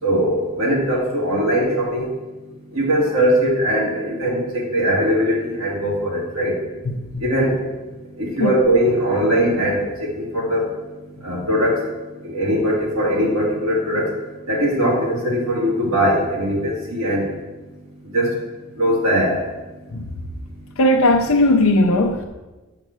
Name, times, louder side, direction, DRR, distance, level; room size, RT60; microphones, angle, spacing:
voice 1, 0.0-2.1 2.7-6.5 7.2-7.6 8.2-10.6 11.2-11.8 12.2-14.1 14.5-17.2 18.1-18.3 18.8-19.4, equal, 85° right, -4 dB, 3.0 m, -20 dB
voice 2, 6.9-7.2 8.4-8.5 19.9-20.0 20.8-22.2, left 1 dB, 80° left, 2 dB, 0.6 m, -17 dB
7.5 x 6.3 x 6.3 m, 1.2 s
head